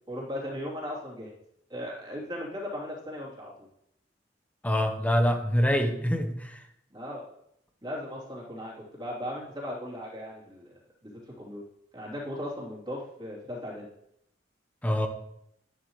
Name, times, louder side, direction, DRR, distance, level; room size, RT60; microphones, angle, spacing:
voice 1, 0.1-1.3 1.7-3.7 6.9-7.2 7.8-10.7 11.0-11.6 11.9-13.9, left 1 dB, 25° right, -4 dB, 3.3 m, -37 dB
voice 2, 4.6-6.6 14.8-15.1, equal, 10° left, 5 dB, 1.1 m, -25 dB
12.5 x 11.0 x 3.2 m, 0.77 s
head